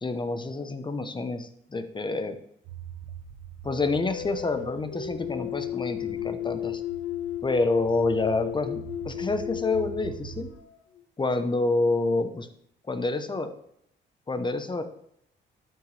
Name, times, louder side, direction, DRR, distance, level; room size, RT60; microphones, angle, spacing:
voice 1, 0.0-2.4 3.6-6.8 7.4-10.5 11.2-12.5 12.9-13.5 14.3-14.8, left 3 dB, 25° left, 8 dB, 0.9 m, -28 dB
sound 1, 2.6-10.6, right 9 dB, 90° right, 0.7 m, -45 dB
sound 2, 3.7-11.0, left 11 dB, 80° left, 1.1 m, -35 dB
12.5 x 5.8 x 3.3 m, 0.73 s
cardioid pair, 90°, 20 cm